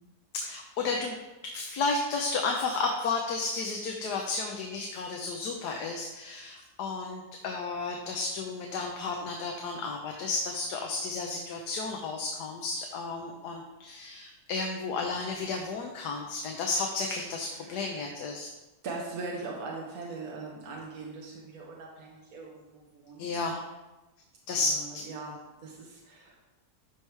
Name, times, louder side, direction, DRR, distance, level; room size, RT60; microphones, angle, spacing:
voice 1, 0.3-1.2 1.4-18.5 23.2-23.6 24.5-24.8, left 3 dB, 90° left, 2 dB, 1.4 m, -32 dB
voice 2, 17.5-18.1 18.8-23.3 24.6-26.4, right 3 dB, 70° right, -3 dB, 1.6 m, -41 dB
12.5 x 4.8 x 3.3 m, 1.1 s
omnidirectional pair, 1.7 m